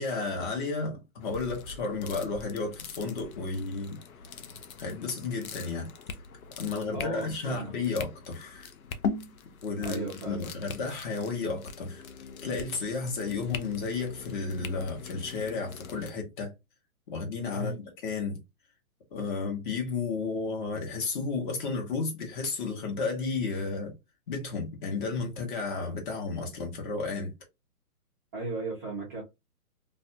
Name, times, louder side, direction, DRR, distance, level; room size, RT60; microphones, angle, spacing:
voice 1, 0.0-4.0 4.8-5.9 6.6-8.7 9.6-12.0 12.4-16.5 17.1-18.4 19.1-23.9 24.3-27.3, left 4 dB, 35° left, 1.1 m, -32 dB
sound 1, 1.2-16.1, left 5 dB, 70° left, 0.7 m, -41 dB
voice 2, 6.9-7.7 9.8-10.5 17.5-17.8 28.3-29.2, right 2 dB, 15° right, 0.5 m, -36 dB
2.6 x 2.2 x 2.6 m
hypercardioid pair, 145°, 44 cm